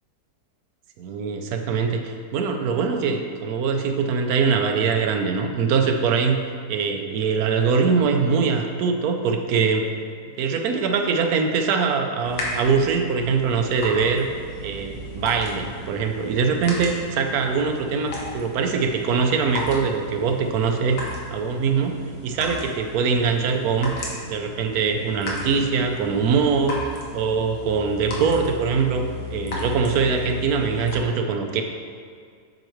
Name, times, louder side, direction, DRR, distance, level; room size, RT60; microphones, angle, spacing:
voice 1, 1.0-6.4 6.7-9.9 10.4-14.3 14.6-21.0 21.3-21.9 22.2-23.9 24.3-26.8 27.1-29.0 29.3-31.6, right 5 dB, 70° right, 4 dB, 1.1 m, -22 dB
sound 1, 12.2-31.0, left 2 dB, 85° left, 1.6 m, -35 dB
7.7 x 5.0 x 3.0 m, 2.1 s
omnidirectional pair, 1.8 m